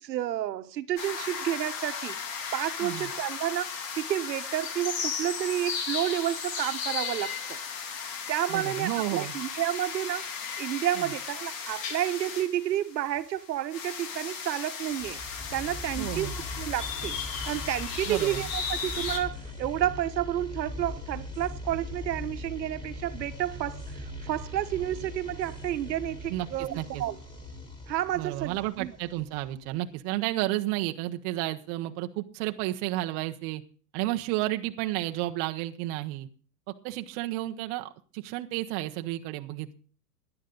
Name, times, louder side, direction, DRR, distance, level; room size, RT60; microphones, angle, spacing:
voice 1, 0.0-2.2 2.5-7.6 8.3-15.2 15.5-17.2 17.5-27.1 27.9-28.9, right 12 dB, 80° right, 1.2 m, -31 dB
sound 1, 1.0-19.2, left 6 dB, 50° left, 2.9 m, -36 dB
voice 2, 8.5-9.3 11.0-11.1 16.0-16.3 18.1-18.4 26.3-27.0 28.1-33.6 33.9-36.3 36.8-39.7, right 16 dB, 25° right, 0.8 m, -32 dB
sound 2, 14.9-29.8, left 2 dB, 10° left, 3.4 m, -40 dB
16.5 x 11.0 x 3.9 m
supercardioid pair, 155°, 50 cm